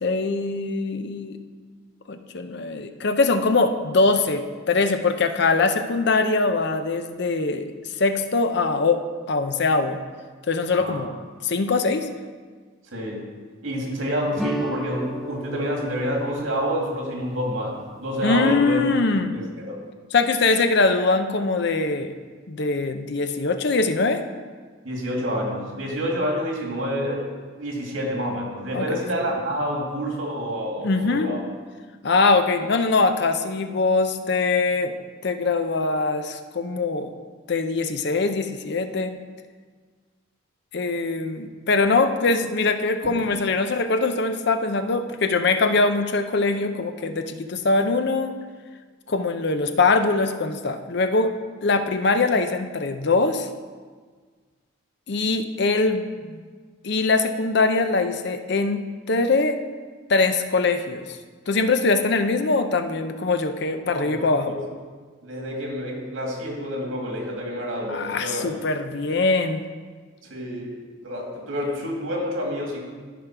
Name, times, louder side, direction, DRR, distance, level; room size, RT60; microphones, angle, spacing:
voice 1, 0.0-1.4 2.1-7.7 8.0-9.0 9.3-10.0 10.5-11.1 11.4-12.1 18.2-19.3 20.1-22.1 22.5-24.2 28.7-28.9 30.8-31.3 32.0-34.9 35.2-37.1 37.5-39.1 40.7-48.3 49.1-51.3 51.6-53.5 55.1-56.4 56.8-59.6 60.1-61.0 61.5-64.5 67.9-69.6, left 3 dB, 55° left, 8 dB, 0.6 m, -22 dB
voice 2, 12.9-13.3 13.6-18.8 19.3-19.8 24.8-27.3 27.6-31.4 43.0-43.1 63.8-64.6 65.2-68.7 70.2-70.8 71.0-72.8, equal, 90° right, -1 dB, 2.3 m, -28 dB
sound 1, 14.4-19.2, equal, ahead, 0.4 m, -36 dB
13.5 x 5.2 x 4.6 m, 1.5 s
head